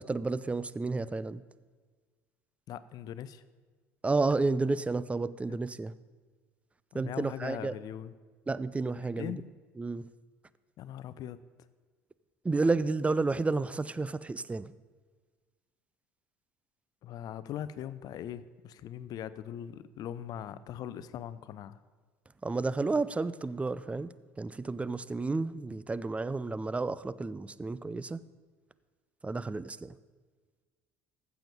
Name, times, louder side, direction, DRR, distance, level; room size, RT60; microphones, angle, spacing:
voice 1, 0.0-1.4 4.0-5.9 6.9-7.7 8.5-9.4 9.8-10.0 12.4-14.7 22.4-28.2 29.2-30.0, right 3 dB, 15° right, 17 dB, 0.5 m, -31 dB
voice 2, 2.7-3.4 6.9-8.1 9.2-9.5 10.8-11.4 17.0-21.8, left 10 dB, 55° left, 15 dB, 0.6 m, -40 dB
15.0 x 7.1 x 5.2 m, 1.4 s
hypercardioid pair, 60°, 8 cm